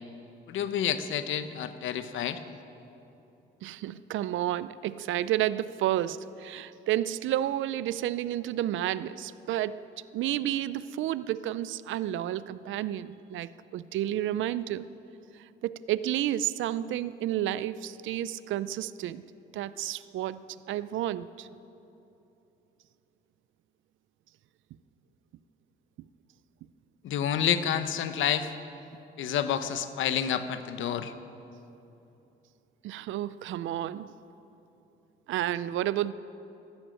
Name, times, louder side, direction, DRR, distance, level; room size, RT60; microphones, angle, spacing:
voice 1, 0.5-2.4 27.0-28.5 29.2-31.1, left 9 dB, 75° left, 1.0 m, -29 dB
voice 2, 3.6-9.8 10.1-14.9 15.6-19.2 19.5-20.4 20.7-21.5 32.8-34.1 35.3-36.1, right 12 dB, 75° right, 0.5 m, -31 dB
13.5 x 11.5 x 9.0 m
cardioid pair, 90°, 20 cm